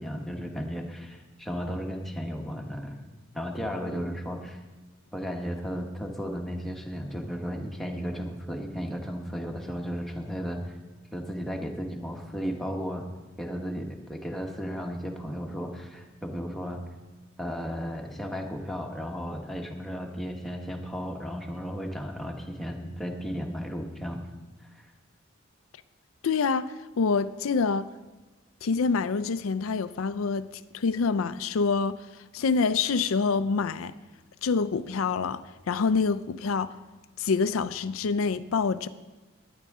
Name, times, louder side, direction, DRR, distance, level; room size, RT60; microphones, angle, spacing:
voice 1, 0.0-3.0 3.3-4.6 5.1-10.7 11.1-13.0 13.4-16.8 17.4-24.2 24.6-24.9, equal, ahead, 1.3 m, -34 dB
voice 2, 26.2-27.9 28.6-33.9 34.4-36.7 37.2-38.9, left 4 dB, 80° left, 0.5 m, -26 dB
17.5 x 10.0 x 3.6 m
head